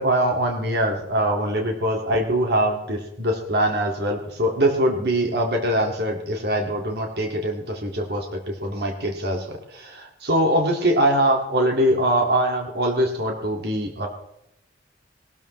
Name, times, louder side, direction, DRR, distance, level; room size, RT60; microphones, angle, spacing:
voice 1, 0.0-14.1, right 1 dB, 60° right, 2 dB, 2.1 m, -23 dB
19.5 x 13.0 x 3.2 m, 0.82 s
head